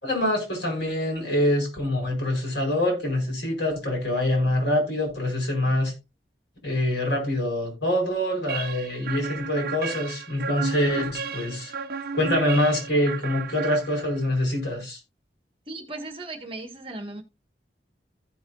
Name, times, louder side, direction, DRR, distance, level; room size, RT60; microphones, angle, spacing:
voice 1, 0.0-5.9 6.6-11.7 12.1-15.0, left 1 dB, 85° left, 5.1 m, -25 dB
sound 1, 8.5-14.4, right 5 dB, 55° right, 0.6 m, -33 dB
voice 2, 15.7-17.2, right 2 dB, 30° right, 1.4 m, -37 dB
15.5 x 5.4 x 2.4 m
head